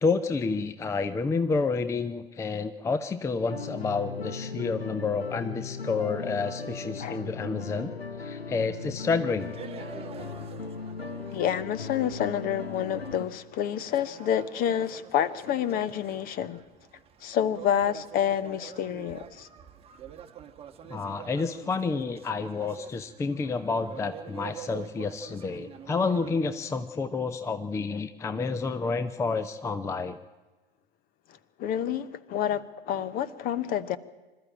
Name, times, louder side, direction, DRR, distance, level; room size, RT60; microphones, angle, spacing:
voice 1, 0.0-7.9 8.2-9.5 20.9-30.2, left 4 dB, 10° left, 0.6 m, -29 dB
sound 1, 3.5-13.3, left 5 dB, 85° left, 1.1 m, -38 dB
sound 2, 9.4-26.4, right 9 dB, 20° right, 1.3 m, -47 dB
voice 2, 11.3-16.6 17.2-19.5 31.6-34.0, left 9 dB, 30° left, 0.9 m, -28 dB
25.5 x 13.0 x 8.8 m
figure-of-eight pair, 90°, 30 cm